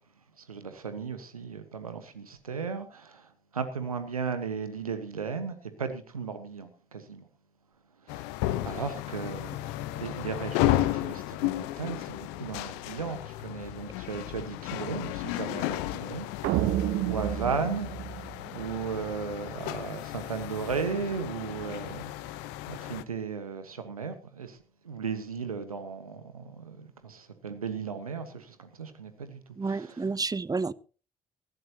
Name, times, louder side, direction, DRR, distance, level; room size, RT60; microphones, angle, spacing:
voice 1, 0.5-3.3 3.5-7.3 8.1-8.2 8.6-9.5 10.0-18.2 18.5-22.4 22.7-24.6 24.8-30.1, right 5 dB, 85° right, 1.4 m, -36 dB
sound 1, 8.1-23.0, left 15 dB, 70° left, 0.9 m, -34 dB
sound 2, 16.4-18.9, right 12 dB, 65° right, 1.0 m, -30 dB
voice 2, 29.6-30.7, right 4 dB, 20° right, 0.8 m, -30 dB
19.0 x 15.5 x 2.9 m
figure-of-eight pair, 45°, 18 cm